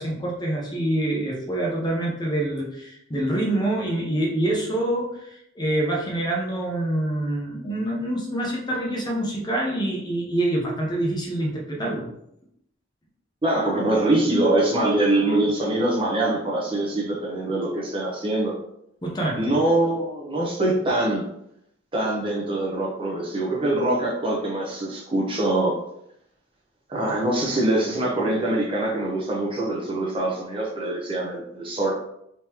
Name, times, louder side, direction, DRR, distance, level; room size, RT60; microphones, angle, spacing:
voice 1, 0.0-12.1 19.0-19.5, right 1 dB, 20° left, -3 dB, 0.8 m, -26 dB
voice 2, 13.4-18.5 19.4-21.3 21.9-25.8 26.9-31.9, right 1 dB, 30° right, -3 dB, 0.8 m, -23 dB
3.6 x 3.0 x 2.9 m, 0.76 s
head